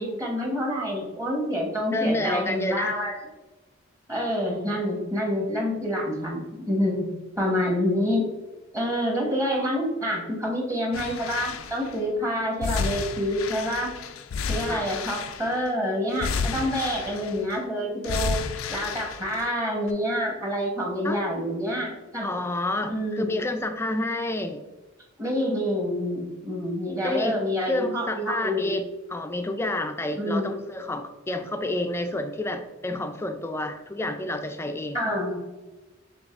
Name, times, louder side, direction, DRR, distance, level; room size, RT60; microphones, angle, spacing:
voice 1, 0.0-3.1 4.1-8.2 8.7-13.9 14.5-18.4 18.7-22.3 22.9-23.3 25.2-28.8 30.2-30.5 34.9-35.4, equal, 15° right, -1 dB, 1.0 m, -27 dB
voice 2, 1.9-3.0 14.7-14.9 21.0-21.2 22.2-24.6 27.0-28.8 29.1-35.0, left 1 dB, 10° left, 7 dB, 0.3 m, -29 dB
sound 1, 10.9-11.9 12.6-15.7 16.1-17.6 18.0-19.5 19.9-20.0, left 5 dB, 90° left, 0.4 m, -31 dB
6.1 x 3.3 x 2.4 m, 1.1 s
head